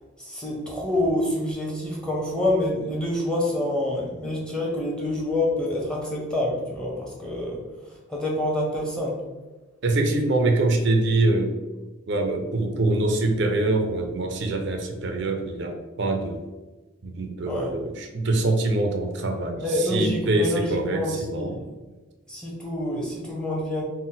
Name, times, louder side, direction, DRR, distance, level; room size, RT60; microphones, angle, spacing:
voice 1, 0.2-9.2 17.5-17.7 19.6-21.7 22.3-23.8, left 1 dB, 5° left, -3 dB, 0.8 m, -27 dB
voice 2, 9.8-11.6 12.1-16.4 17.0-21.6, right 2 dB, 60° right, 4 dB, 0.5 m, -24 dB
4.0 x 2.1 x 3.9 m, 1.2 s
head